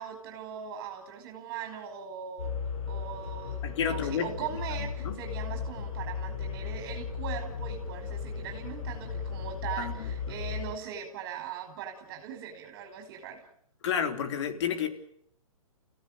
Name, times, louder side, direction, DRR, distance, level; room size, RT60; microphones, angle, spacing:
voice 1, 0.0-2.5 2.9-13.4, right 8 dB, 35° right, 4 dB, 5.0 m, -40 dB
sound 1, 2.4-10.8, left 6 dB, 75° left, 7.9 m, -36 dB
voice 2, 3.6-4.3 5.0-5.2 9.8-10.1 13.8-14.9, left 7 dB, 50° left, 7 dB, 3.9 m, -30 dB
30.0 x 16.5 x 9.3 m, 0.70 s
hypercardioid pair, 145°, 18 cm